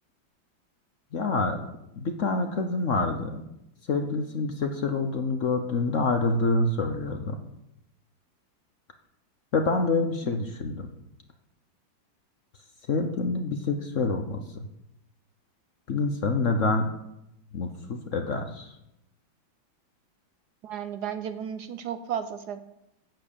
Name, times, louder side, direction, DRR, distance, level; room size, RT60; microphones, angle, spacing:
voice 1, 1.1-1.6 2.0-3.4 3.9-7.4 9.5-10.9 12.9-14.6 15.9-16.9 17.5-18.8, left 3 dB, 50° left, 5 dB, 1.0 m, -27 dB
voice 2, 20.6-22.6, right 9 dB, 65° right, 9 dB, 1.1 m, -34 dB
10.0 x 7.9 x 6.9 m, 0.85 s
omnidirectional pair, 2.1 m